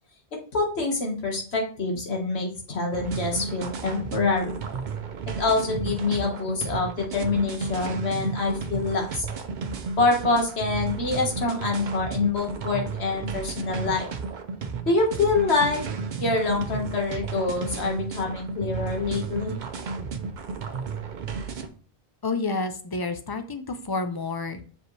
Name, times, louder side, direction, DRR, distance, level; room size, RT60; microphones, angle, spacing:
voice 1, 0.5-4.6 5.4-9.2 10.0-14.1 14.9-15.8 16.2-19.5, left 3 dB, 80° left, 1 dB, 1.7 m, -26 dB
sound 1, 2.9-21.7, right 5 dB, 55° right, 0.7 m, -33 dB
voice 2, 22.2-24.6, left 3 dB, 30° left, 8 dB, 0.4 m, -29 dB
6.6 x 4.9 x 3.2 m, 0.41 s
omnidirectional pair, 1.1 m